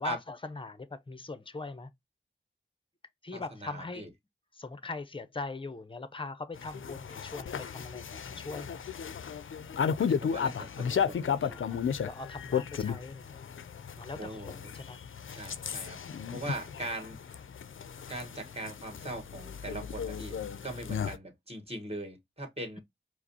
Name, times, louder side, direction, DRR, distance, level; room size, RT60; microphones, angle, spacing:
voice 1, 0.0-1.9 3.2-4.1 4.5-8.8 11.5-13.4 14.0-15.0, left 3 dB, 25° left, 0.6 m, -41 dB
voice 2, 3.3-4.1 10.0-11.6 14.2-14.7 15.3-16.0 16.3-17.5 18.1-22.8, right 2 dB, 30° right, 1.6 m, -41 dB
sound 1, 6.6-21.2, left 7 dB, 75° left, 0.4 m, -34 dB
4.8 x 2.0 x 2.6 m
wide cardioid pair, 50°, 21 cm